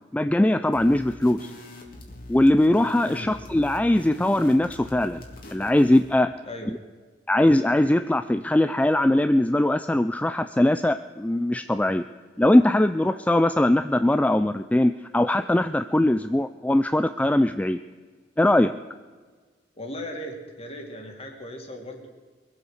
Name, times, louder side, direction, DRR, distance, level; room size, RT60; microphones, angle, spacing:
voice 1, 0.1-1.5 2.3-5.2 5.5-6.3 7.3-12.0 12.4-17.8 18.4-18.7, left 1 dB, 10° left, 10 dB, 0.3 m, -21 dB
sound 1, 0.7-6.2, left 1 dB, 55° left, 2.5 m, -43 dB
voice 2, 3.0-3.4 6.5-6.7 19.7-22.1, left 1 dB, 35° left, 3 dB, 2.5 m, -37 dB
22.0 x 8.1 x 6.5 m, 1.4 s
head